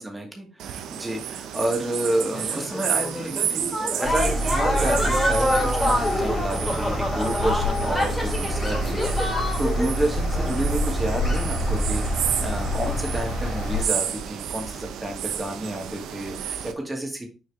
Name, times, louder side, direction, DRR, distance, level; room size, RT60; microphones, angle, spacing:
voice 1, 0.0-17.3, right 1 dB, 15° right, 1 dB, 2.2 m, -30 dB
sound 1, 0.6-16.7, right 9 dB, 85° right, 0.7 m, -32 dB
sound 2, 2.3-10.0 10.3-11.0, left 1 dB, 10° left, 2.7 m, -27 dB
sound 3, 4.0-13.8, equal, 25° left, 3.2 m, -27 dB
6.6 x 4.5 x 3.6 m, 0.31 s
cardioid pair, 90°, 0 cm